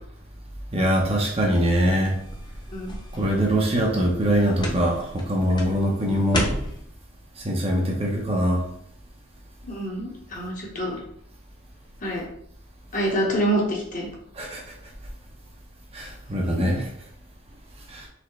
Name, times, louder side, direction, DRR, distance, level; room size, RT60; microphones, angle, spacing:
voice 1, 0.7-2.2 3.1-6.6 7.4-8.6 14.4-14.6 15.9-16.9 17.9-18.1, equal, 30° right, -1 dB, 0.8 m, -23 dB
sound 1, 1.4-6.8, left 1 dB, 20° left, 0.6 m, -34 dB
voice 2, 9.6-11.0 12.0-12.2 12.9-14.1, right 1 dB, 40° left, -2 dB, 1.1 m, -26 dB
4.2 x 3.4 x 3.2 m, 0.67 s
head